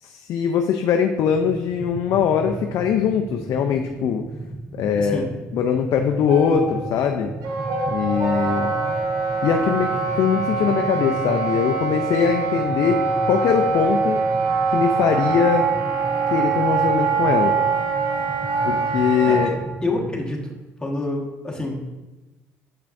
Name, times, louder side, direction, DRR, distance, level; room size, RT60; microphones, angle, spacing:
voice 1, 0.0-4.3 4.7-5.3 5.5-7.3 7.9-8.7 9.4-14.2 14.7-15.7 16.3-17.6 18.6-19.5, left 7 dB, 65° left, 4 dB, 0.4 m, -21 dB
sound 1, 1.3-20.3, right 2 dB, 20° right, 0.5 m, -36 dB
voice 2, 5.0-5.3 19.2-19.6 19.8-21.9, left 2 dB, 15° left, -1 dB, 1.4 m, -28 dB
sound 2, 6.3-10.5, equal, 65° right, 1.3 m, -32 dB
Wind instrument woodwind instrument, 7.4-19.5, right 5 dB, 80° right, 0.8 m, -23 dB
6.6 x 5.6 x 2.6 m, 1.1 s
supercardioid pair, 75°, 6 cm